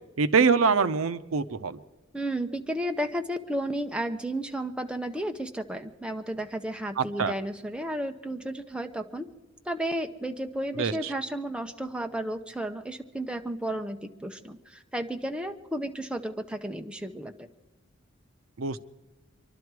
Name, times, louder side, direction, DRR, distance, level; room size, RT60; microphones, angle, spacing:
voice 1, 0.2-1.8 7.0-7.3 10.8-10.9 18.6-18.8, right 5 dB, 75° right, 13 dB, 0.6 m, -24 dB
voice 2, 2.1-9.3 9.7-17.5, right 1 dB, 5° right, 5 dB, 0.7 m, -33 dB
25.5 x 12.0 x 4.7 m, 1.1 s
head